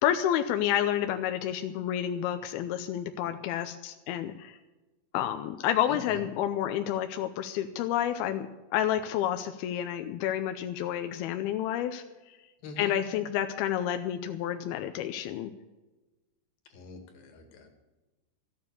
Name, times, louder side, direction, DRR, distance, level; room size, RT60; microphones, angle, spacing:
voice 1, 0.0-4.6 5.1-8.5 8.7-12.4 12.8-15.5, left 11 dB, 90° left, 7 dB, 2.6 m, -30 dB
voice 2, 12.6-13.0 16.7-17.7, left 5 dB, 70° left, 5 dB, 3.6 m, -43 dB
13.5 x 9.4 x 8.3 m, 1.1 s
omnidirectional pair, 4.4 m